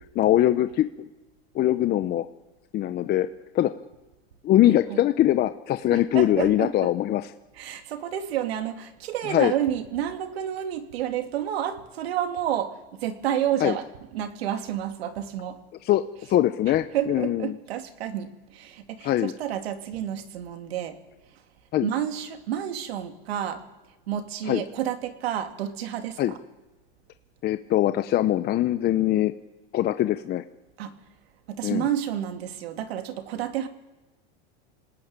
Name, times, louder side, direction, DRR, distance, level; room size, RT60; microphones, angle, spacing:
voice 1, 0.1-1.1 1.5-2.3 2.7-3.3 3.5-3.7 4.4-7.3 9.2-9.5 13.6-13.7 15.8-16.0 16.3-17.6 19.0-19.3 21.7-21.9 24.5-24.6 26.2-26.3 27.4-29.3 29.7-30.4 31.6-31.8, left 13 dB, 30° left, 9 dB, 0.8 m, -22 dB
voice 2, 4.7-5.0 5.9-6.9 7.6-13.8 14.1-15.6 16.9-21.0 21.8-23.6 24.1-26.4 30.8-30.9 31.5-33.7, right 10 dB, 80° right, 7 dB, 2.6 m, -30 dB
27.0 x 19.0 x 9.0 m, 1.1 s
supercardioid pair, 130°, 30 cm